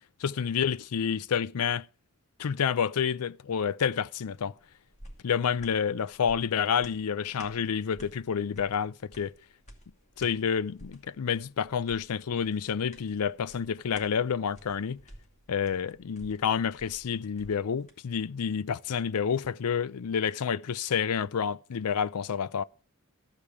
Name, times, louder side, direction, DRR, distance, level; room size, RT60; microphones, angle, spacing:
voice 1, 0.2-1.9 2.4-4.5 5.2-9.3 10.2-15.0 15.5-22.6, left 7 dB, 80° left, 0.5 m, -29 dB
sound 1, 4.3-18.0 18.4-18.5, equal, 30° left, 2.3 m, -53 dB
14.0 x 5.0 x 7.0 m
head